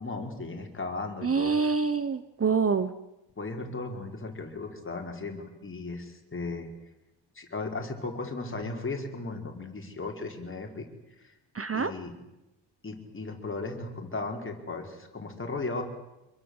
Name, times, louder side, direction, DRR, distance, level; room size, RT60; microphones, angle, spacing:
voice 1, 0.0-1.6 3.4-6.7 7.3-10.8 11.2-11.3 11.7-12.1 12.8-15.8, left 3 dB, 25° left, 2 dB, 4.7 m, -36 dB
voice 2, 1.2-2.9 11.5-11.9, right 5 dB, 30° right, 12 dB, 0.9 m, -26 dB
26.5 x 23.0 x 8.0 m, 0.97 s
wide cardioid pair, 130°, 47 cm